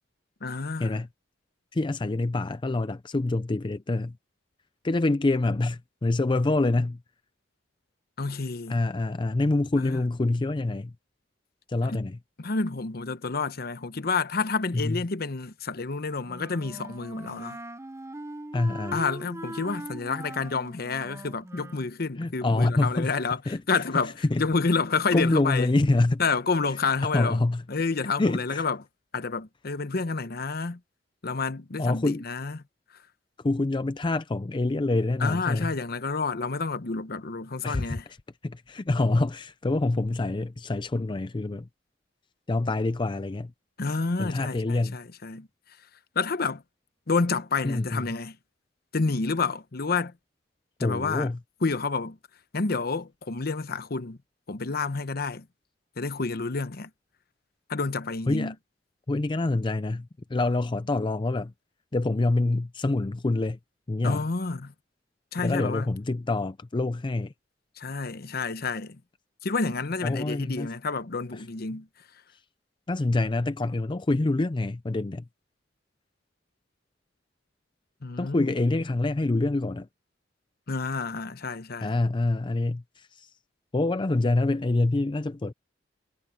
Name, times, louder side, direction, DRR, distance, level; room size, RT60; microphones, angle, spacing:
voice 1, 0.4-1.0 8.2-8.8 9.8-10.0 11.8-12.1 12.4-17.6 18.9-23.4 23.7-24.1 24.4-25.7 26.2-27.4 27.7-28.8 29.1-30.8 31.2-32.6 35.2-38.0 43.8-45.5 46.1-46.6 47.1-48.4 48.9-50.1 50.8-51.3 51.6-52.2 52.5-54.2 54.5-55.5 56.0-56.9 57.7-58.5 64.0-64.7 65.3-65.9 67.8-69.0 69.4-71.9 78.0-78.5 80.7-81.9, left 4 dB, 55° left, 0.9 m, -29 dB
voice 2, 1.7-4.1 4.8-7.0 8.7-10.9 11.7-12.2 14.7-15.0 18.5-19.0 22.2-23.1 23.5-23.6 24.2-24.4 25.1-26.2 27.0-27.6 28.2-28.7 31.8-32.2 33.4-35.7 37.6-38.0 38.4-41.7 42.5-43.5 44.2-45.0 47.6-48.2 50.8-51.4 58.3-58.5 59.1-61.5 61.9-63.6 63.9-64.2 65.4-67.3 70.0-70.7 72.9-75.2 78.2-79.9 81.8-83.3 83.7-85.5, left 2 dB, 25° left, 0.5 m, -26 dB
Wind instrument woodwind instrument, 16.2-21.9, right 1 dB, 15° right, 0.8 m, -41 dB
head